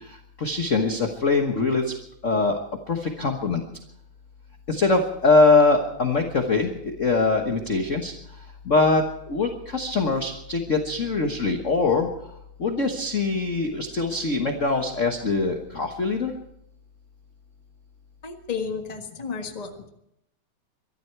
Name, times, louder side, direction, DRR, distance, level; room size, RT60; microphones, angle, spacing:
voice 1, 0.4-1.8 2.2-2.6 2.9-3.6 4.7-8.1 8.7-12.1 12.6-16.3, left 3 dB, 55° left, 3 dB, 0.8 m, -22 dB
voice 2, 18.2-19.9, left 5 dB, 25° left, 4 dB, 0.9 m, -32 dB
23.5 x 13.0 x 4.6 m, 0.78 s
omnidirectional pair, 3.4 m